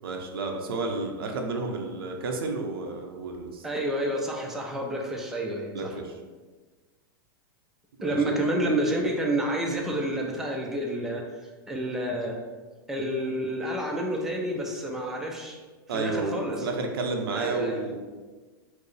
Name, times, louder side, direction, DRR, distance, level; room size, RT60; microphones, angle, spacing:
voice 1, 0.0-3.6 5.7-6.1 8.0-8.2 15.9-18.0, right 3 dB, 85° right, 3 dB, 0.6 m, -31 dB
voice 2, 3.6-5.9 8.0-11.2 11.7-12.4 12.9-15.6 15.9-16.7 17.3-17.8, right 1 dB, 5° right, -1 dB, 0.5 m, -29 dB
4.5 x 2.0 x 3.2 m, 1.3 s
hypercardioid pair, 125°, 12 cm